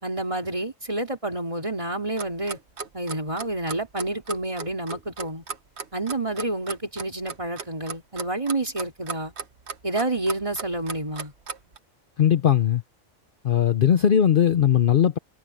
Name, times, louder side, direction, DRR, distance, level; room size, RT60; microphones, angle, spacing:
voice 1, 0.0-2.6 2.9-5.4 5.9-9.3 9.8-11.3, right 2 dB, 25° right, 2.8 m, -29 dB
Clock, 2.2-11.8, right 5 dB, 65° right, 1.5 m, -36 dB
voice 2, 12.2-12.8 13.4-15.2, left 9 dB, 55° left, 0.7 m, -19 dB
omnidirectional pair, 1.2 m